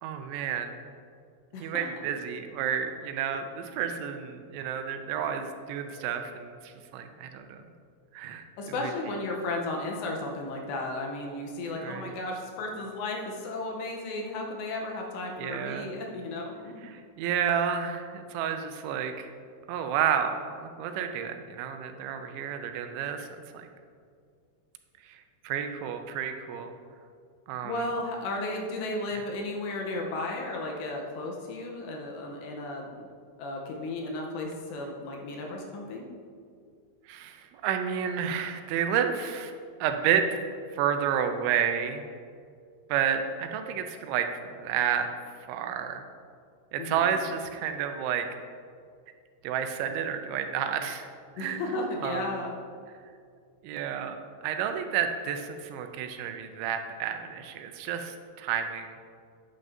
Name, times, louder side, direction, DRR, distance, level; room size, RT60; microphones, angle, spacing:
voice 1, 0.0-0.8 1.6-7.6 8.1-8.5 8.8-8.9 11.8-12.2 15.4-15.9 16.8-19.3 19.7-23.7 25.0-26.7 27.5-27.8 37.1-40.2 40.7-42.0 42.9-45.1 45.5-46.0 46.7-48.3 49.4-51.1 51.4-51.6 52.0-52.3 53.6-54.2 54.4-59.0, right 8 dB, 85° right, 6 dB, 2.9 m, -30 dB
voice 2, 1.5-1.9 8.6-16.9 27.6-33.1 33.4-36.1 46.8-47.2 51.4-52.6, left 2 dB, 80° left, 0 dB, 2.8 m, -34 dB
11.0 x 8.9 x 2.7 m, 2.2 s
omnidirectional pair, 5.4 m